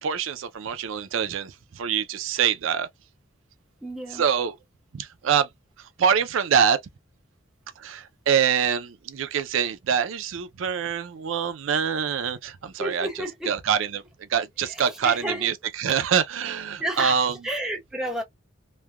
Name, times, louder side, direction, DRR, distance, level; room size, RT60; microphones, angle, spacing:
voice 1, 0.0-2.9 4.1-4.6 4.9-5.5 5.8-6.8 7.8-13.1 13.5-17.3, right 7 dB, 85° right, 0.4 m, -25 dB
voice 2, 3.8-4.2 12.8-13.5 14.7-15.5 16.8-18.2, right 1 dB, 5° right, 0.8 m, -31 dB
3.2 x 2.1 x 2.2 m
head